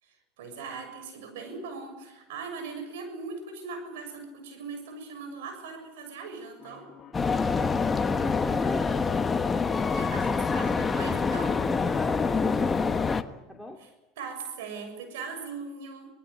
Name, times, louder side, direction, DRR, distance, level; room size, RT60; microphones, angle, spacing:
voice 1, 0.0-6.9 9.8-11.5 13.8-13.9 14.2-16.1, right 4 dB, 85° right, 7 dB, 6.8 m, -40 dB
sound 1, 6.6-13.2, left 8 dB, 35° left, 5.4 m, -51 dB
sound 2, 7.1-13.2, left 4 dB, 20° left, 1.2 m, -26 dB
voice 2, 8.1-9.0 11.2-13.8, left 2 dB, ahead, 3 dB, 2.7 m, -40 dB
26.5 x 19.0 x 8.3 m, 1.1 s
supercardioid pair, 105°, 0 cm